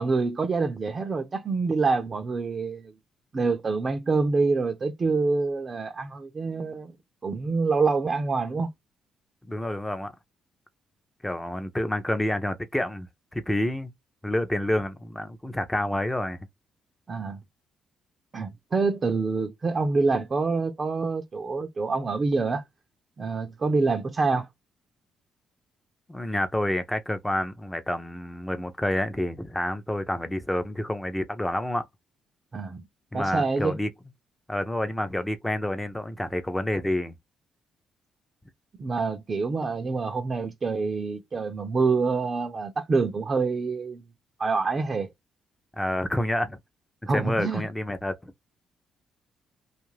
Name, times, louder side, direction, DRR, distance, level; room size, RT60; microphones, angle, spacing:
voice 1, 0.0-2.9 3.3-6.9 7.2-8.7 17.1-17.4 18.3-22.6 23.2-24.5 32.5-32.8 33.1-33.7 38.8-44.0 44.4-45.1 47.1-47.6, right 4 dB, 35° right, 0.5 m, -26 dB
voice 2, 9.5-10.1 11.2-13.1 13.3-13.9 14.2-16.4 26.1-31.9 33.1-33.9 34.5-37.1 45.8-46.6 47.0-48.3, left 1 dB, 10° left, 0.6 m, -28 dB
2.5 x 2.4 x 3.1 m
cardioid pair, 90°, 0 cm